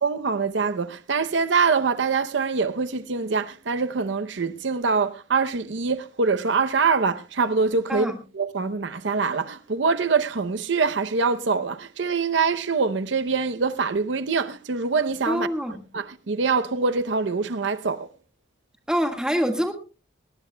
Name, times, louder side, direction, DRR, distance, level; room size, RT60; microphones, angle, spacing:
voice 1, 0.0-15.5 15.9-18.1, right 4 dB, 80° right, 0.7 m, -24 dB
voice 2, 7.9-8.2 15.3-15.8 18.9-19.7, equal, 5° right, 1.6 m, -25 dB
20.0 x 17.5 x 2.2 m
head